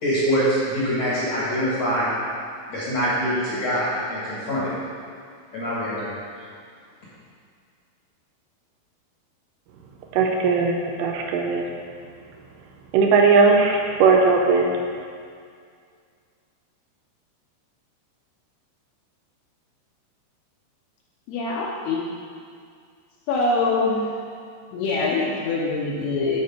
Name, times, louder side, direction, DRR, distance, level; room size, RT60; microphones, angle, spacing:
voice 1, 0.0-2.1 2.7-4.7 5.5-6.1, equal, 55° left, -9 dB, 1.9 m, -24 dB
voice 2, 10.2-11.7 12.9-14.7, right 4 dB, 80° right, 1 dB, 2.8 m, -18 dB
voice 3, 21.3-22.0 23.3-24.1 24.7-26.4, left 3 dB, 75° left, -3 dB, 2.5 m, -24 dB
12.5 x 4.6 x 4.5 m, 2.2 s
omnidirectional pair, 5.3 m